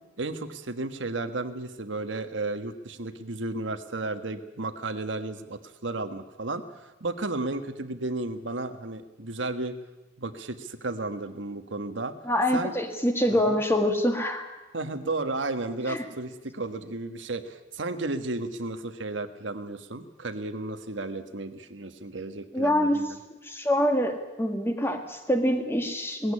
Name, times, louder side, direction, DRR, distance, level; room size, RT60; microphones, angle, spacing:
voice 1, 0.2-6.6 7.0-9.7 10.2-12.1 12.5-12.7 13.5-13.6 14.7-23.2, right 2 dB, 80° right, 8 dB, 1.5 m, -33 dB
voice 2, 12.2-14.5 15.9-16.0 22.5-23.0 23.4-26.3, left 1 dB, 15° left, 5 dB, 1.9 m, -25 dB
19.0 x 15.0 x 9.8 m, 1.1 s
head